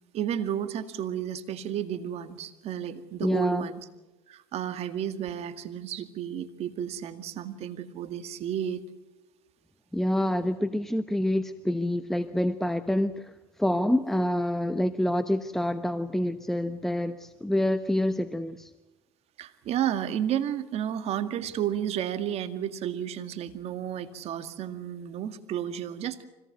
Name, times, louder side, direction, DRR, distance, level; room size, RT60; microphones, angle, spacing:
voice 1, 0.1-3.8 4.3-8.8 19.4-26.3, right 10 dB, 55° right, 10 dB, 2.0 m, -32 dB
voice 2, 3.2-3.7 9.9-13.3 13.6-18.7, left 1 dB, 5° left, 11 dB, 1.1 m, -27 dB
25.0 x 18.5 x 8.0 m, 1.1 s
hypercardioid pair, 80°, 13 cm